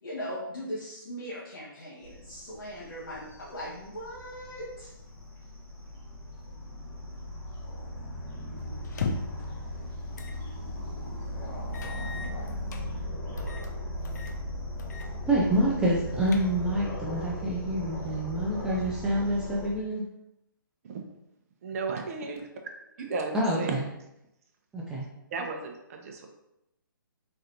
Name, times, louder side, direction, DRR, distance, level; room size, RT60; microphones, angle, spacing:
voice 1, 0.0-4.9, equal, 70° left, -8 dB, 1.2 m, -39 dB
sound 1, 2.0-19.7, left 1 dB, 10° left, 1.1 m, -38 dB
sound 2, 8.8-9.5 10.2-10.4 10.8-10.9 11.7-12.8 13.4-13.7 14.0-14.4 14.8-15.1 15.4-15.5 16.0-16.8, left 4 dB, 50° left, 0.5 m, -37 dB
voice 2, 15.3-20.0 23.3-23.6 24.7-25.1, right 1 dB, 5° right, -5 dB, 0.3 m, -27 dB
voice 3, 21.6-22.5 23.0-23.7 25.3-26.3, right 4 dB, 40° right, 3 dB, 0.7 m, -34 dB
3.8 x 3.3 x 2.7 m, 0.85 s
hypercardioid pair, 145°, 12 cm